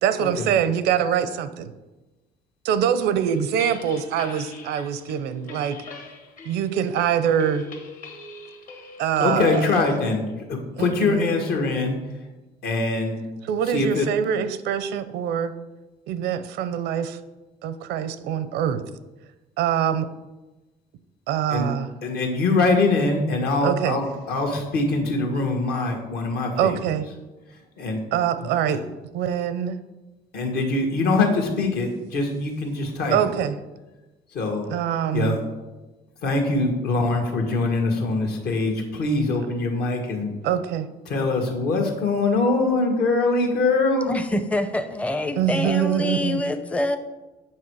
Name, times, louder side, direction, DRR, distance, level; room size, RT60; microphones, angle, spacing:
voice 1, 0.0-1.7 2.6-5.8 6.5-7.7 9.0-9.6 10.8-11.4 13.5-15.5 16.1-17.2 17.6-18.8 19.6-20.1 21.3-21.9 23.6-24.0 26.6-27.1 28.1-28.8 29.1-29.8 33.1-33.6 34.7-35.4 40.4-40.9 45.4-46.4, right 9 dB, 85° right, 12 dB, 0.6 m, -24 dB
sound 1, 3.2-9.8, left 4 dB, 55° left, 1.6 m, -42 dB
voice 2, 9.2-12.3 12.6-13.2 13.6-14.1 21.5-21.7 22.0-26.9 27.5-28.0 28.4-28.8 30.3-33.3 34.3-34.7 35.1-35.4 36.2-40.3 41.0-44.1, left 3 dB, 70° left, 2 dB, 1.7 m, -23 dB
voice 3, 44.1-47.0, left 1 dB, 10° left, 8 dB, 0.5 m, -25 dB
7.6 x 5.5 x 4.7 m, 1.1 s
cardioid pair, 110°, 17 cm